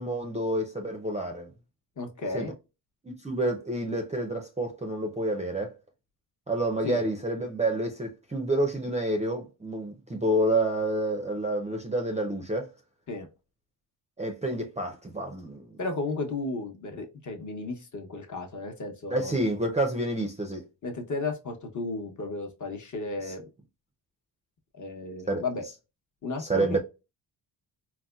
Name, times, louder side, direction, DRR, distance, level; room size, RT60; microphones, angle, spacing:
voice 1, 0.0-1.5 2.3-2.5 3.0-5.7 6.5-12.7 14.2-15.7 19.1-20.6 25.3-25.4 26.4-26.8, right 1 dB, 15° right, 0.5 m, -28 dB
voice 2, 2.0-2.5 6.8-7.0 13.1-13.3 15.8-19.4 20.8-23.4 24.8-25.6 26.2-26.8, left 3 dB, 40° left, 0.8 m, -34 dB
4.0 x 2.2 x 2.3 m
cardioid pair, 120°, 46 cm